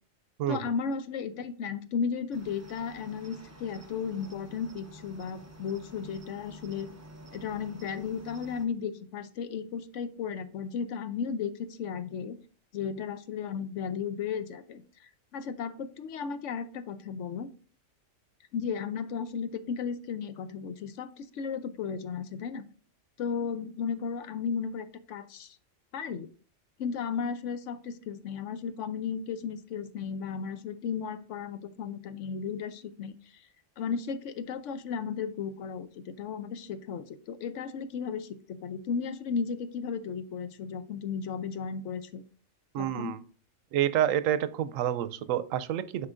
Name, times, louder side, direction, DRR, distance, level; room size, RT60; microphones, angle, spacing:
voice 1, 0.5-6.9 7.3-12.4 12.7-17.5 18.5-22.6 23.2-25.6 25.9-26.3 26.8-33.4 33.8-42.2 42.8-43.2, left 6 dB, 75° left, 11 dB, 0.9 m, -35 dB
Cricket, 2.3-8.7, right 1 dB, 20° right, 0.5 m, -50 dB
voice 2, 42.7-43.2 43.7-46.1, right 11 dB, 90° right, 13 dB, 1.0 m, -28 dB
8.3 x 5.0 x 2.5 m, 0.39 s
omnidirectional pair, 1.3 m